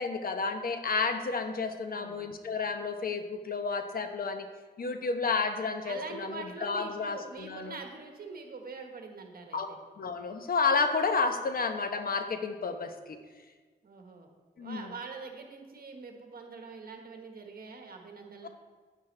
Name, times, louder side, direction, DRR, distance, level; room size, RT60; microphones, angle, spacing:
voice 1, 0.0-4.5 4.8-7.8 9.5-9.7 10.0-13.2 14.6-14.9 18.4-18.5, left 4 dB, 55° left, 7 dB, 0.9 m, -31 dB
voice 2, 1.9-2.3 5.8-9.8 13.8-14.3 14.6-18.5, right 4 dB, 60° right, 3 dB, 1.4 m, -44 dB
9.6 x 9.5 x 3.3 m, 1.4 s
cardioid pair, 85°, 18 cm